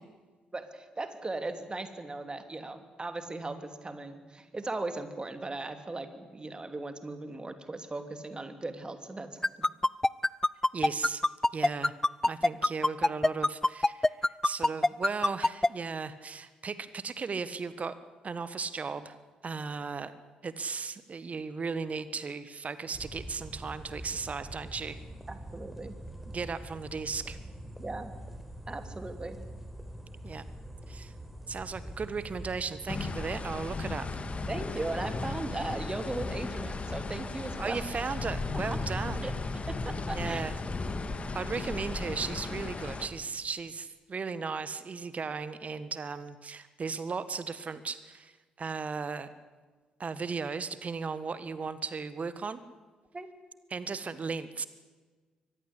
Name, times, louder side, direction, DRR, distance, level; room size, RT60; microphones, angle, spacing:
voice 1, 0.5-9.4 25.3-25.9 27.8-28.1 28.7-29.4 34.5-37.8 38.7-38.8 39.2-39.3 39.7-40.5 53.1-53.3, right 2 dB, 25° right, 9 dB, 2.9 m, -38 dB
sound 1, 9.4-15.7, left 2 dB, 15° left, 0.6 m, -23 dB
voice 2, 10.7-11.2 11.5-11.9 12.3-18.0 18.2-19.1 19.4-20.1 20.4-25.0 26.3-27.4 30.2-30.4 30.9-31.1 31.5-34.1 37.6-39.3 40.1-40.5 41.3-48.3 48.6-49.3 50.0-52.6 53.7-54.7, right 5 dB, 40° right, 14 dB, 1.5 m, -36 dB
sound 2, 22.9-41.2, right 1 dB, 5° right, 4.4 m, -45 dB
sound 3, 32.9-43.1, left 3 dB, 35° left, 2.3 m, -36 dB
24.0 x 18.5 x 8.4 m, 1.4 s
figure-of-eight pair, 40°, 4 cm